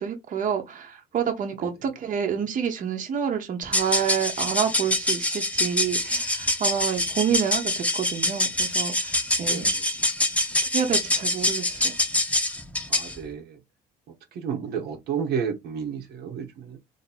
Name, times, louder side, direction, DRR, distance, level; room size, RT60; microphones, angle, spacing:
voice 1, 0.0-9.7 10.7-11.9, right 8 dB, 50° right, 1.0 m, -28 dB
sound 1, 3.6-13.2, left 1 dB, 10° left, 0.9 m, -25 dB
voice 2, 9.4-9.9 12.9-13.6 14.3-16.8, right 7 dB, 75° right, 1.0 m, -32 dB
2.9 x 2.9 x 4.1 m
cardioid pair, 110°, 17 cm